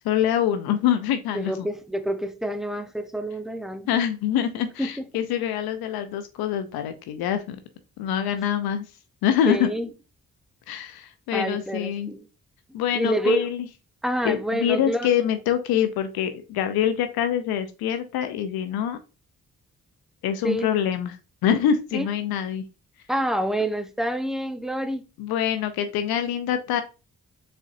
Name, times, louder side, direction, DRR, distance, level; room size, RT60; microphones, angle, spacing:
voice 1, 0.0-1.7 3.9-7.6 8.0-8.9 9.2-9.7 10.7-12.1 12.7-13.7 14.2-19.0 20.2-21.2 21.4-22.6 25.2-26.8, left 9 dB, 85° left, 0.5 m, -25 dB
voice 2, 1.3-3.9 4.8-5.1 9.5-9.9 11.3-12.2 12.9-13.5 14.0-15.3 20.4-20.7 21.9-22.1 23.1-25.0, equal, ahead, 0.7 m, -27 dB
4.3 x 3.7 x 2.5 m
supercardioid pair, 45°, 36 cm